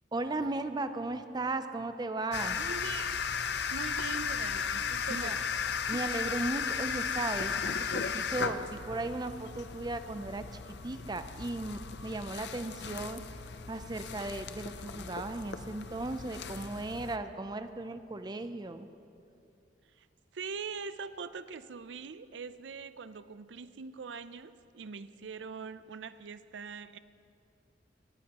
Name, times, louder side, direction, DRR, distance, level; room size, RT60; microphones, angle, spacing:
voice 1, 0.1-2.6 5.2-5.4 5.9-10.5 10.8-13.2 13.7-18.9, right 2 dB, 20° right, 9 dB, 0.5 m, -36 dB
sound 1, 2.3-17.2, left 6 dB, 65° left, 0.5 m, -36 dB
voice 2, 2.6-3.2 3.7-5.5 5.8-5.9 20.0-20.1 20.3-27.0, right 5 dB, 80° right, 13 dB, 0.5 m, -42 dB
19.0 x 14.5 x 3.0 m, 2.6 s
head